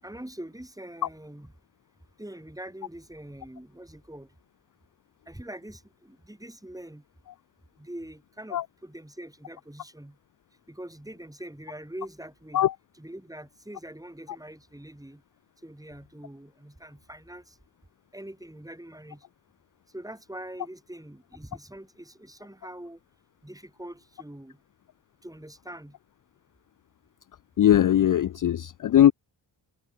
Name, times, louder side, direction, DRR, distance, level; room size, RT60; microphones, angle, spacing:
voice 1, 0.0-1.5 2.2-4.3 5.3-7.0 7.8-10.2 10.7-12.6 12.9-15.2 15.6-17.6 18.1-19.2 19.9-23.0 23.4-24.6 25.2-26.0, right 1 dB, 5° right, 6.2 m, -43 dB
voice 2, 27.6-29.1, left 11 dB, 45° left, 0.5 m, -20 dB
cardioid pair, 80°, 46 cm